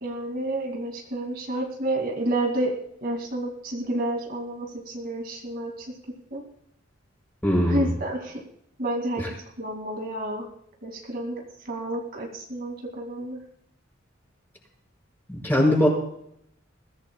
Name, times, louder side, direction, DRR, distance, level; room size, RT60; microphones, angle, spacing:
voice 1, 0.0-2.7 3.0-5.9 6.3-6.4 7.6-8.4 8.8-9.2 9.6-10.5 10.8-13.4, right 1 dB, 50° right, 1 dB, 2.4 m, -30 dB
voice 2, 7.4-7.9 15.3-15.9, left 1 dB, 10° left, -1 dB, 6.0 m, -20 dB
21.5 x 16.5 x 2.3 m, 0.71 s
head